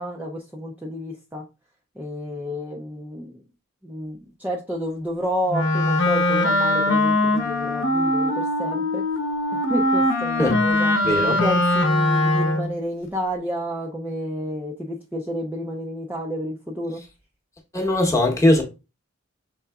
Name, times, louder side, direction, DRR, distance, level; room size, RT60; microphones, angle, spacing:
voice 1, 0.0-1.4 2.0-3.4 3.8-9.0 9.5-11.0 11.3-17.0, equal, 10° right, 0.4 m, -30 dB
Wind instrument woodwind instrument, 5.5-12.8, left 1 dB, 55° left, 0.9 m, -21 dB
voice 2, 11.0-11.4 17.7-18.6, left 1 dB, 15° left, 0.9 m, -19 dB
5.7 x 3.7 x 2.3 m
head